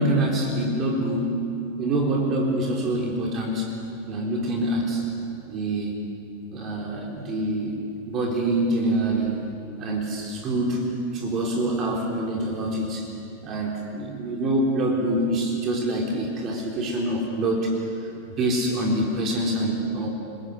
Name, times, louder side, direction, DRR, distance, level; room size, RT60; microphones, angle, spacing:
voice 1, 0.0-1.5 1.8-5.1 5.5-5.9 6.5-7.8 8.1-9.4 9.8-13.1 13.4-17.9 18.4-20.1, right 1 dB, 30° right, -1 dB, 3.9 m, -25 dB
29.5 x 21.0 x 8.2 m, 2.6 s
figure-of-eight pair, 90°, 0 cm